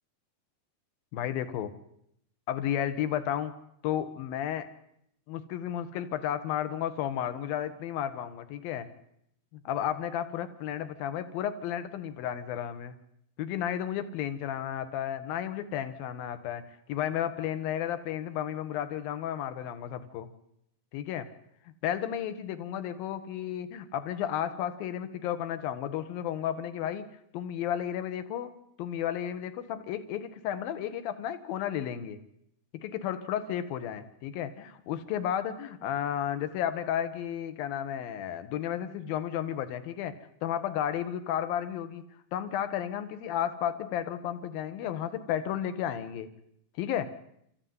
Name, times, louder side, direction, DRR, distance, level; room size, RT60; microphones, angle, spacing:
voice 1, 1.1-1.7 2.5-3.5 3.8-4.7 5.3-8.9 9.5-12.9 13.4-16.6 16.9-20.3 20.9-21.3 21.8-27.1 27.3-28.5 28.8-32.2 32.7-40.2 40.4-42.1 42.3-46.3 46.8-47.1, left 10 dB, 75° left, 12 dB, 3.2 m, -33 dB
29.0 x 15.0 x 9.6 m, 0.75 s
omnidirectional pair, 4.2 m